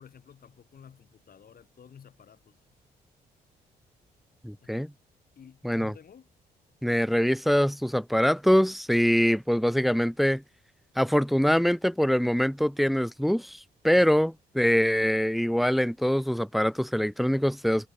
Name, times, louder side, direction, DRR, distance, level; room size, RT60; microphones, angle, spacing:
voice 1, 0.0-2.6 4.6-4.9 5.4-6.3, left 7 dB, 55° left, 5.4 m, -52 dB
voice 2, 4.4-4.9 5.6-5.9 6.8-10.4 11.0-13.6 13.8-17.9, equal, ahead, 0.4 m, -24 dB
supercardioid pair, 60°, 18 cm